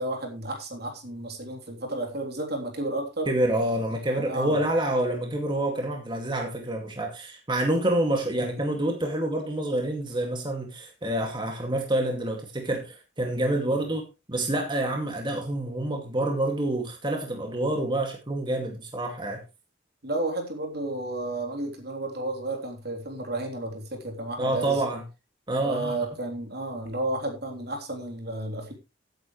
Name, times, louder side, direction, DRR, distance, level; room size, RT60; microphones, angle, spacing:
voice 1, 0.0-3.3 4.1-4.6 13.6-13.9 20.0-24.8 25.6-28.7, right 2 dB, 55° right, 3.3 m, -32 dB
voice 2, 3.3-14.0 14.3-19.4 24.4-25.0 25.5-26.0, right 1 dB, 25° right, 2.2 m, -27 dB
16.0 x 9.3 x 3.2 m
head